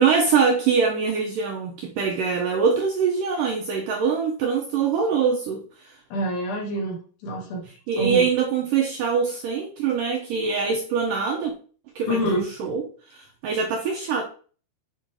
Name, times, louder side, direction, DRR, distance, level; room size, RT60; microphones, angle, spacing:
voice 1, 0.0-5.6 7.9-11.5 12.0-12.8 13.1-14.2, right 6 dB, 75° right, 1 dB, 2.0 m, -23 dB
voice 2, 6.1-7.7 8.0-8.3 12.1-12.5, equal, 75° left, -1 dB, 4.0 m, -26 dB
8.5 x 5.1 x 3.7 m, 0.41 s
omnidirectional pair, 4.8 m